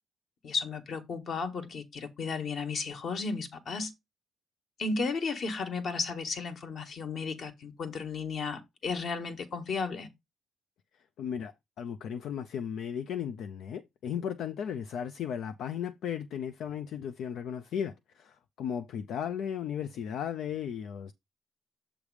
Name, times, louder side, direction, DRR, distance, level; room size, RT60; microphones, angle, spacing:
voice 1, 0.4-3.9 4.8-10.1, left 4 dB, 55° left, 1.6 m, -34 dB
voice 2, 11.2-21.1, left 8 dB, 75° left, 0.5 m, -35 dB
7.2 x 3.4 x 4.8 m
cardioid pair, 90°, 0 cm